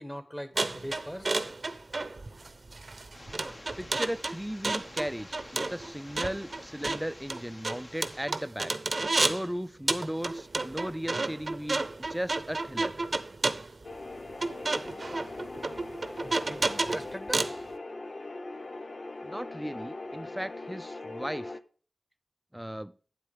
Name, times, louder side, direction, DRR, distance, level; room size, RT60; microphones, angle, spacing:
voice 1, 0.0-1.5 16.2-17.5, equal, 10° left, 8 dB, 1.6 m, -41 dB
sound 1, 0.6-9.5 9.9-17.6, right 3 dB, 60° right, 0.8 m, -31 dB
sound 2, 3.1-8.3, left 1 dB, 35° left, 1.3 m, -49 dB
voice 2, 3.8-8.7 9.2-12.9 19.2-21.6 22.5-22.9, equal, 10° right, 15 dB, 0.6 m, -36 dB
sound 3, 13.8-21.6, left 2 dB, 65° left, 0.8 m, -41 dB
9.1 x 8.2 x 3.4 m, 0.41 s
wide cardioid pair, 50°, 0 cm